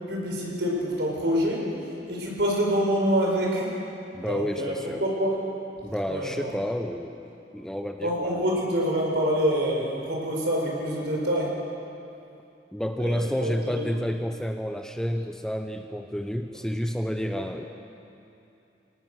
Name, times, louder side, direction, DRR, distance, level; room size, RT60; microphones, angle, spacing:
voice 1, 0.0-1.7 2.1-3.8 4.3-5.4 6.1-6.5 8.0-11.5 13.0-13.8 17.3-17.4, equal, 65° right, -2 dB, 5.2 m, -26 dB
voice 2, 4.1-5.0 5.8-7.2 7.5-8.4 12.7-17.7, equal, 5° left, 5 dB, 0.7 m, -30 dB
24.5 x 18.0 x 6.4 m, 2.7 s
head